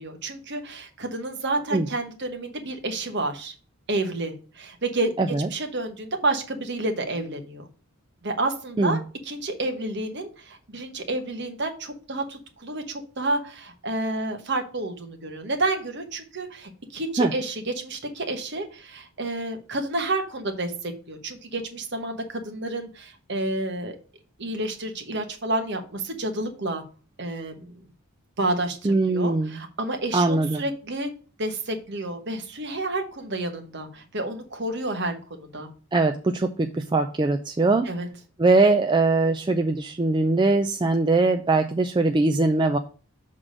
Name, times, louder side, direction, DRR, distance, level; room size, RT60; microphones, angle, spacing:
voice 1, 0.0-3.5 3.9-5.1 5.5-7.7 8.2-9.0 9.2-24.0 24.4-26.8 27.2-27.8 28.4-31.1 31.4-35.7 37.8-38.1, right 2 dB, 50° right, 5 dB, 1.2 m, -30 dB
voice 2, 5.2-5.5 8.8-9.0 17.2-17.3 28.8-29.6 30.1-30.6 35.9-37.9 38.4-42.8, right 3 dB, 20° right, 5 dB, 0.3 m, -21 dB
6.5 x 3.7 x 6.1 m, 0.38 s
head